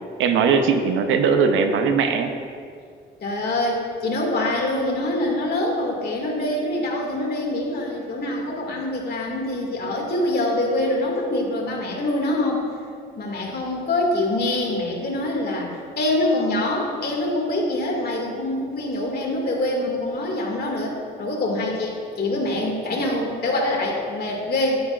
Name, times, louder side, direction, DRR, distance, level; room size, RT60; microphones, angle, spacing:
voice 1, 0.2-2.3, right 5 dB, 85° right, 6 dB, 0.8 m, -19 dB
voice 2, 3.2-12.7 13.2-20.9 21.2-24.8, left 1 dB, 55° left, -1 dB, 2.2 m, -25 dB
10.5 x 9.1 x 2.5 m, 2.2 s
cardioid pair, 90°, 20 cm